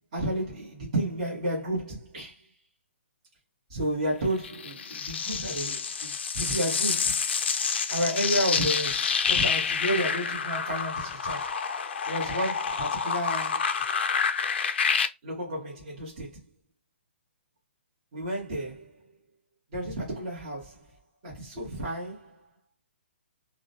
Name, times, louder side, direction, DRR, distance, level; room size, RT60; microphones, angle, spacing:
voice 1, 0.1-2.5 3.7-7.2 7.9-9.0 9.3-11.5 12.1-13.9 15.2-16.4 18.1-18.9 19.7-20.8 21.2-22.5, right 1 dB, 30° right, 1.0 m, -31 dB
sound 1, 4.4-15.1, left 6 dB, 60° left, 0.4 m, -28 dB
2.3 x 2.0 x 2.6 m
hypercardioid pair, 175°, 7 cm